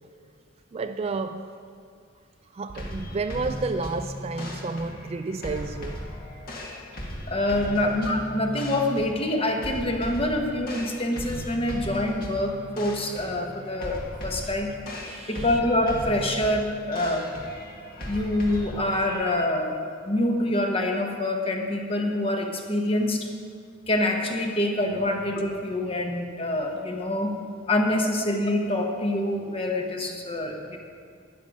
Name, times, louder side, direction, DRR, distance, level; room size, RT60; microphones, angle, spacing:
voice 1, 0.7-1.5 2.4-6.1 7.8-7.9 14.4-14.5 15.1-15.6, right 3 dB, 30° right, 8 dB, 0.3 m, -31 dB
sound 1, 2.7-19.4, equal, 45° left, 1.9 m, -37 dB
voice 2, 7.3-14.7 15.3-17.3 18.1-23.3 23.9-27.4 27.7-30.8, left 1 dB, 25° left, 3 dB, 1.1 m, -26 dB
12.5 x 9.7 x 5.3 m, 2.2 s
head